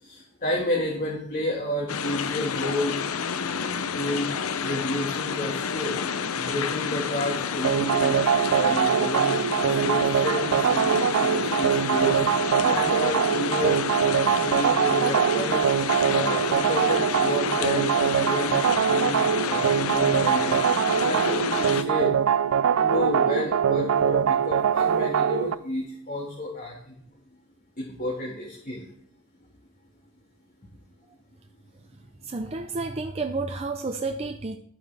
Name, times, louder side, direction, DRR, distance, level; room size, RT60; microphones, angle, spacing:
voice 1, 0.0-3.0 3.9-6.0 6.3-8.2 8.5-12.2 12.6-13.8 14.4-15.8 16.1-18.6 18.9-20.6 21.0-22.1 22.8-27.0 27.8-28.9, left 1 dB, 40° left, -2 dB, 1.8 m, -31 dB
sound 1, 1.9-21.8, left 6 dB, 85° left, 0.6 m, -30 dB
sound 2, 7.6-25.6, right 8 dB, 75° right, 0.3 m, -23 dB
voice 2, 32.2-34.6, right 3 dB, 30° right, 4 dB, 0.6 m, -30 dB
11.5 x 8.9 x 3.4 m, 0.64 s
head